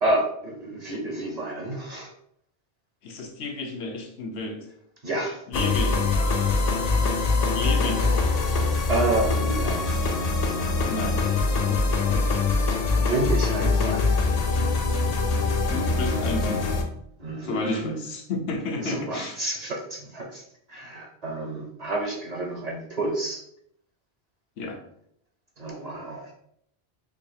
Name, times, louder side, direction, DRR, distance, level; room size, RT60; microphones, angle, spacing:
voice 1, 0.0-2.1 5.0-5.4 7.3-7.6 8.9-10.1 13.0-14.0 17.2-18.0 18.8-20.4 20.7-23.4 25.6-26.3, right 2 dB, 45° right, 0 dB, 0.6 m, -29 dB
voice 2, 3.0-4.6 5.5-6.6 7.5-8.3 10.8-12.3 13.6-14.0 15.7-16.7 17.4-19.4 24.6-24.8, left 3 dB, 80° left, 3 dB, 0.9 m, -32 dB
sound 1, 5.5-16.8, left 3 dB, 55° left, 0.4 m, -23 dB
4.8 x 2.3 x 2.7 m, 0.72 s
omnidirectional pair, 1.1 m